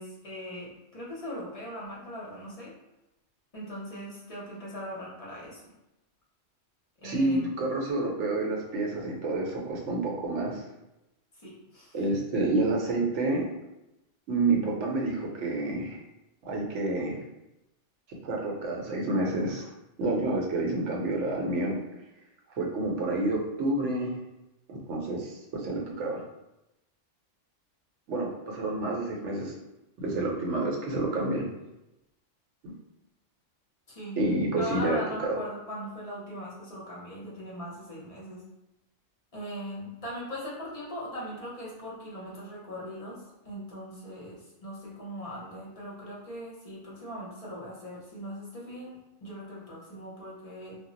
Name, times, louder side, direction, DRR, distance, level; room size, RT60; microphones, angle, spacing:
voice 1, 0.0-2.7 3.5-5.7 7.0-7.5 11.4-12.0 33.9-34.2 34.6-38.4 39.3-50.8, equal, 40° left, -6 dB, 0.6 m, -40 dB
voice 2, 7.0-10.6 11.9-13.5 14.3-16.0 16.4-17.2 18.1-19.7 20.0-21.8 22.5-24.1 24.7-26.2 28.1-29.5 30.0-31.4 34.2-35.3, right 2 dB, 70° right, -1 dB, 0.9 m, -29 dB
2.2 x 2.0 x 3.7 m, 0.91 s
omnidirectional pair, 1.3 m